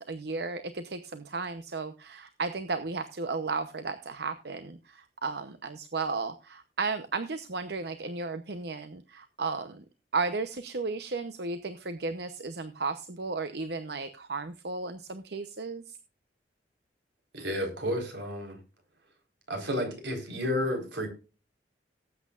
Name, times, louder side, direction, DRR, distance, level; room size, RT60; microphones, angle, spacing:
voice 1, 0.1-9.8 10.1-16.0, right 4 dB, 65° right, 10 dB, 0.9 m, -34 dB
voice 2, 17.3-18.6 19.5-21.1, left 1 dB, 85° right, 4 dB, 4.3 m, -31 dB
18.5 x 8.4 x 2.5 m, 0.33 s
head